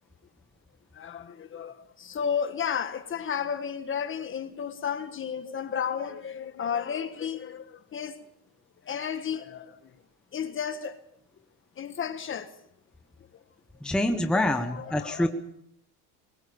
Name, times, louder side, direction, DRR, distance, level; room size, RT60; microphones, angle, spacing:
voice 1, 1.0-8.2 8.9-9.7 10.3-11.0 11.8-12.5 14.5-15.3, left 7 dB, 30° left, 1.5 m, -33 dB
voice 2, 13.8-15.3, left 1 dB, ahead, 1.2 m, -26 dB
22.0 x 19.0 x 7.1 m
cardioid pair, 145°, 43 cm